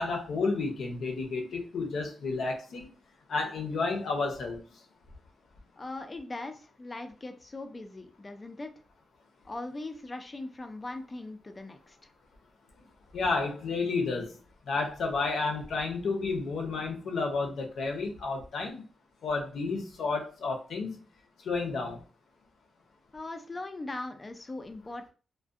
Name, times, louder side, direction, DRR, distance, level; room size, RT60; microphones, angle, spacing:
voice 1, 0.0-2.9 3.3-4.6 13.1-14.3 14.7-18.8 19.2-21.0 21.4-22.0, left 3 dB, 70° left, 0.6 m, -31 dB
voice 2, 5.8-8.7 9.4-12.1 23.1-25.1, left 2 dB, 25° left, 0.4 m, -40 dB
2.5 x 2.1 x 2.3 m
wide cardioid pair, 120°, 0 cm